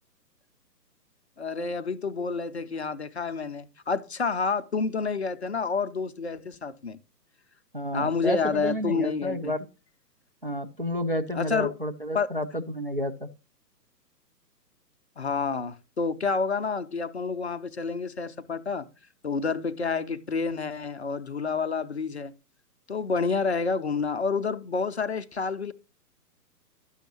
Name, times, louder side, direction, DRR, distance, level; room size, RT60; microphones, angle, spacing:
voice 1, 1.4-7.0 7.9-9.5 11.4-11.7 12.1-12.3 15.2-18.9 19.2-22.3 22.9-25.7, left 4 dB, 45° left, 0.5 m, -29 dB
voice 2, 7.7-9.7 10.4-13.3, equal, 35° right, 0.4 m, -30 dB
11.5 x 6.3 x 2.8 m
figure-of-eight pair, 135°, 50 cm